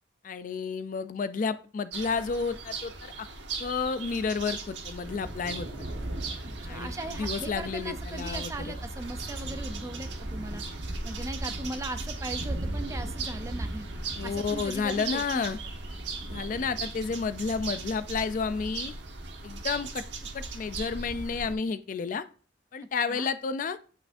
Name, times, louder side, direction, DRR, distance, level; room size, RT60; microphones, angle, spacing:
voice 1, 0.2-3.3 3.6-5.9 6.7-8.7 14.2-15.6 16.3-18.9 19.4-20.0 20.3-22.2 22.7-23.8, left 5 dB, 45° left, 12 dB, 0.3 m, -31 dB
sound 1, 1.9-21.5, right 3 dB, 75° right, 1.2 m, -37 dB
voice 2, 6.4-10.6 11.0-13.9 14.2-15.6 23.1-23.3, right 1 dB, 15° right, 8 dB, 0.5 m, -39 dB
sound 2, 13.4-13.6 15.0-16.2 16.9-17.9 18.4-18.9, right 2 dB, 40° right, 2.4 m, -56 dB
8.1 x 5.7 x 2.6 m, 0.40 s
head